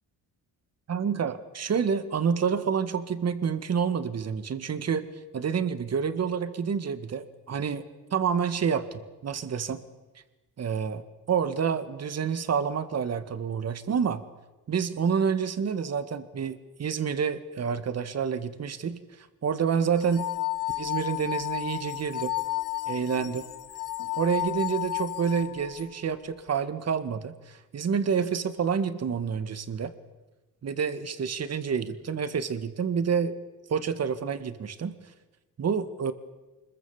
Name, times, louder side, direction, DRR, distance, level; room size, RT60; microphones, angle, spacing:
voice 1, 0.9-5.1 5.3-9.8 10.6-14.2 14.7-19.0 19.4-20.3 20.8-22.3 22.9-23.4 24.2-29.9 30.6-33.4 33.7-35.0 35.6-36.1, right 6 dB, 45° right, 12 dB, 1.8 m, -28 dB
sound 1, 20.0-25.8, left 19 dB, 55° left, 1.4 m, -32 dB
25.0 x 22.0 x 7.2 m, 1.1 s
cardioid pair, 110°, 36 cm